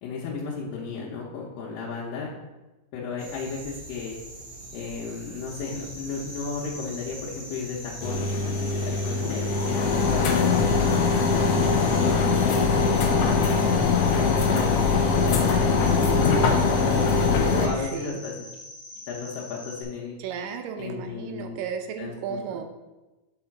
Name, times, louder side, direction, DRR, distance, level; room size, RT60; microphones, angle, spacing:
voice 1, 0.0-2.3 2.9-4.2 4.7-8.7 9.0-11.5 11.9-13.9 14.2-15.6 16.0-18.3 19.1-20.2 20.8-21.6 22.0-22.6, left 5 dB, 85° left, -5 dB, 2.7 m, -34 dB
sound 1, 3.2-12.1, right 2 dB, 40° right, 0.8 m, -44 dB
Cricket, 5.5-19.8, left 2 dB, 15° left, 0.8 m, -43 dB
sound 2, 8.0-17.7, left 4 dB, 70° left, 1.5 m, -22 dB
voice 2, 17.4-18.2 20.2-22.6, right 7 dB, 90° right, 5 dB, 2.5 m, -34 dB
5.6 x 5.5 x 5.8 m, 1.1 s
omnidirectional pair, 3.8 m